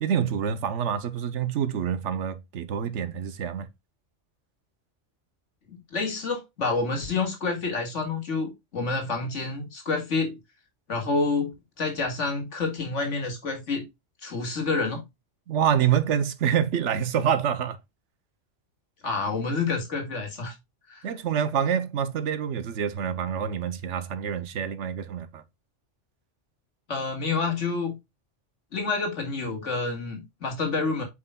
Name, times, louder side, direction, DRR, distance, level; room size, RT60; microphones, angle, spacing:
voice 1, 0.0-3.7 15.5-17.8 21.0-25.4, right 8 dB, 75° right, 1.1 m, -26 dB
voice 2, 5.7-10.4 10.9-13.9 14.2-15.0 19.0-20.5 20.9-21.0 26.9-28.0 28.7-31.0, left 4 dB, 70° left, 2.1 m, -28 dB
8.4 x 5.1 x 2.2 m
omnidirectional pair, 1.3 m